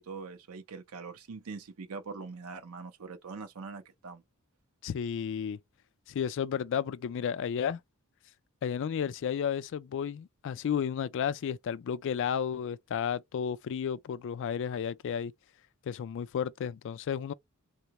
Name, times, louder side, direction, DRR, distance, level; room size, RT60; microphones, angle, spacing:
voice 1, 0.0-4.2, right 4 dB, 70° right, 0.5 m, -43 dB
voice 2, 4.8-5.6 6.1-7.8 8.6-15.3 15.9-17.3, left 8 dB, 55° left, 0.3 m, -32 dB
3.7 x 2.1 x 2.9 m
head